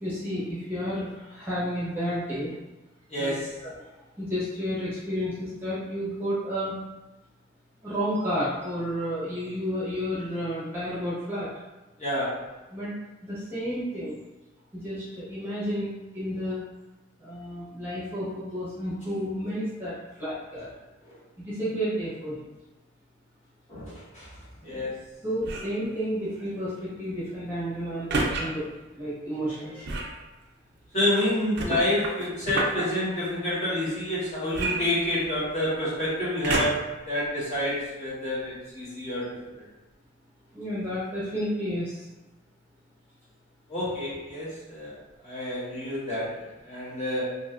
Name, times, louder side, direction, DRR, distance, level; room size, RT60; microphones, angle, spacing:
voice 1, 0.0-2.5 3.2-3.7 4.2-6.8 7.8-11.5 12.7-12.9 13.2-14.1 14.7-16.6 17.2-20.7 21.4-22.3 24.7-24.9 25.2-28.6 28.9-29.9 40.5-42.0, equal, 10° right, -10 dB, 0.8 m, -31 dB
voice 2, 3.1-3.6 12.0-12.4 23.7-24.3 24.6-25.0 30.9-39.3 43.7-44.9 45.2-47.4, left 1 dB, 35° left, -10 dB, 1.4 m, -28 dB
sound 1, 25.4-25.8 28.1-28.4 29.8-30.2 31.6-32.8 34.5-35.5 36.4-37.0 37.6-37.7, right 2 dB, 55° right, 0.4 m, -29 dB
3.1 x 2.7 x 2.4 m, 1.1 s
head